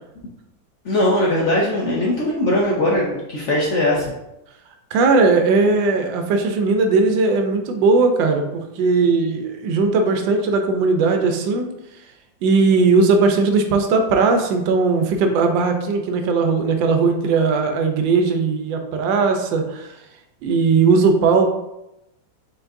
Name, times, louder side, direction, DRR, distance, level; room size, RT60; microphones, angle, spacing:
voice 1, 0.8-4.1, left 1 dB, 60° left, -4 dB, 0.7 m, -20 dB
voice 2, 4.9-11.7 12.4-19.9 20.4-21.5, right 4 dB, 75° right, 4 dB, 1.3 m, -18 dB
4.5 x 4.1 x 2.6 m, 0.88 s
omnidirectional pair, 2.1 m